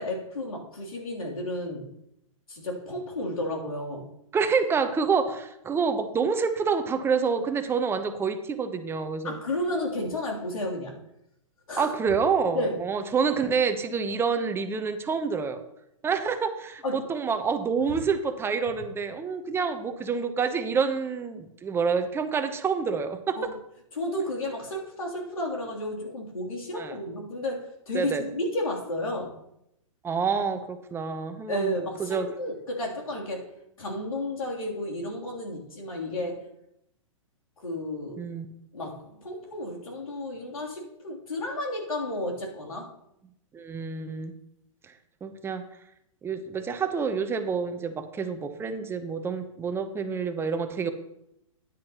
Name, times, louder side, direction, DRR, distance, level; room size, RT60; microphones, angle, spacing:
voice 1, 0.0-1.9 2.5-4.1 9.2-10.9 11.7-11.9 12.5-12.8 16.8-17.0 23.3-23.5 23.9-29.4 31.5-33.5 33.8-36.5 37.6-38.2 38.7-42.9, left 1 dB, 90° left, -2 dB, 3.1 m, -32 dB
voice 2, 4.3-9.4 11.8-15.6 16.0-23.4 26.8-27.0 27.9-28.2 30.0-32.4 38.2-38.5 43.5-44.3 45.2-45.6 46.2-50.9, right 5 dB, 15° right, 9 dB, 0.8 m, -27 dB
13.0 x 10.0 x 2.9 m, 0.79 s
hypercardioid pair, 125°, 17 cm